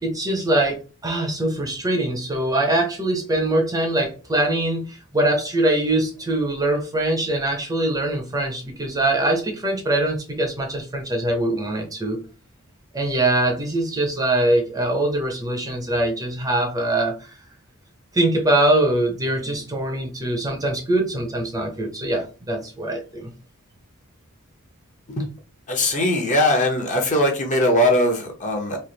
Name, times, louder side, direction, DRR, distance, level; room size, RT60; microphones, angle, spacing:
voice 1, 0.0-12.2 12.9-17.3 18.1-23.3, right 1 dB, 15° right, 2 dB, 0.7 m, -23 dB
voice 2, 25.7-28.8, left 1 dB, 35° left, 2 dB, 0.9 m, -20 dB
3.2 x 2.5 x 3.9 m, 0.34 s
head